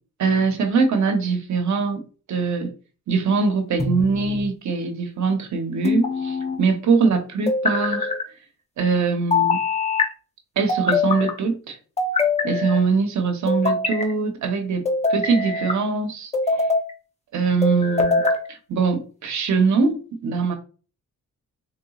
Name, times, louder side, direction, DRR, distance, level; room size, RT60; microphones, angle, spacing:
voice 1, 0.2-2.0 2.3-2.7 3.1-8.1 8.8-9.6 10.6-11.8 12.4-14.8 15.1-16.3 17.3-18.2 18.5-20.5, right 4 dB, 70° right, 0.8 m, -22 dB
sound 1, 3.8-4.5 5.8-6.6 7.5-8.2 9.3-10.1 10.7-11.3 12.0-12.8 13.5-14.1 14.8-15.8 16.3-16.9 17.6-18.4, left 3 dB, 20° left, 0.6 m, -23 dB
4.0 x 3.5 x 2.3 m
wide cardioid pair, 150°, 30 cm